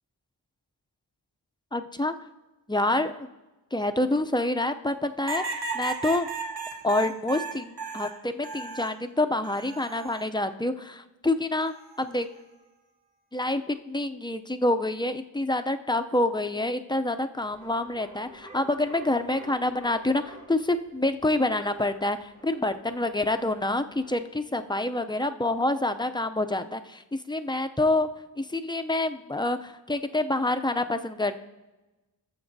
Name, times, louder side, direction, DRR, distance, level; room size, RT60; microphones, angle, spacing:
voice 1, 1.7-2.1 2.7-3.3 3.7-6.3 6.8-12.3 13.3-28.1 28.4-31.4, left 2 dB, 10° left, 8 dB, 0.5 m, -27 dB
sound 1, 5.3-9.0 9.4-10.2 11.6-12.0, right 4 dB, 55° right, 1.0 m, -35 dB
sound 2, 17.4-24.2, right 2 dB, 40° right, 2.2 m, -50 dB
18.5 x 7.0 x 2.7 m, 1.1 s
wide cardioid pair, 45°, 46 cm